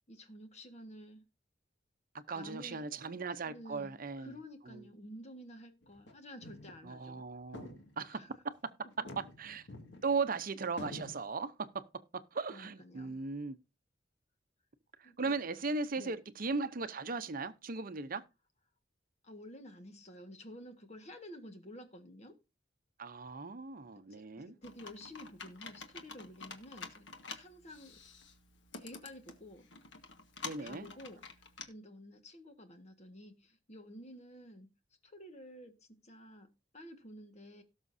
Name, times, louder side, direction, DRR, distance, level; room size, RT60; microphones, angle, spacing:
voice 1, 0.1-1.2 2.3-2.9 3.4-7.3 8.1-8.3 12.5-13.2 15.0-15.4 16.0-16.2 19.2-22.3 24.1-28.0 28.7-29.7 30.6-31.2 31.6-34.7 35.0-37.6, equal, 40° left, 1.6 m, -51 dB
voice 2, 2.3-4.3 4.7-4.8 6.8-9.7 10.0-11.8 12.1-13.6 15.0-18.2 23.0-24.5 30.4-30.9, right 4 dB, 50° right, 0.8 m, -38 dB
sound 1, 5.8-6.1 6.4-6.9 7.2-7.3 7.5-8.4 8.9-10.4 10.8-11.2, left 1 dB, 75° left, 2.0 m, -48 dB
Computer keyboard, 24.6-31.7, left 5 dB, 90° left, 1.4 m, -49 dB
17.5 x 6.4 x 2.7 m
head